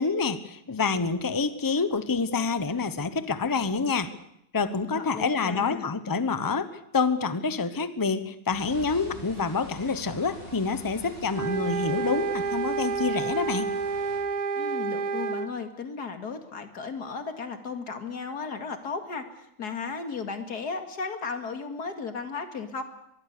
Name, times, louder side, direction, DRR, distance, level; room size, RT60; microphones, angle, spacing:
voice 1, 0.0-4.1 4.5-13.7, left 4 dB, 15° left, 12 dB, 0.9 m, -27 dB
voice 2, 4.9-5.9 14.5-22.8, left 5 dB, 85° left, 7 dB, 2.6 m, -35 dB
sound 1, 8.5-14.2, equal, 45° right, 8.4 m, -45 dB
sound 2, 11.3-15.5, right 4 dB, 75° right, 1.7 m, -29 dB
24.0 x 22.0 x 6.8 m, 0.75 s
omnidirectional pair, 1.7 m